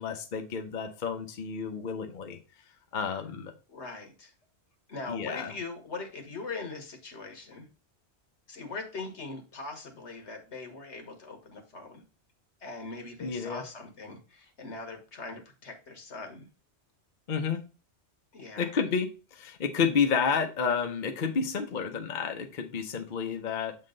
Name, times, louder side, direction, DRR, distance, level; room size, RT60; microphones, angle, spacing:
voice 1, 0.0-2.4 2.9-3.5 5.1-5.5 13.2-13.6 17.3-17.6 18.6-23.8, left 6 dB, 50° left, 5 dB, 0.8 m, -30 dB
voice 2, 3.7-4.3 4.9-7.7 8.5-12.0 12.6-16.5 18.3-18.7, left 3 dB, 75° left, 5 dB, 1.7 m, -41 dB
7.4 x 3.8 x 3.8 m, 0.33 s
omnidirectional pair, 1.2 m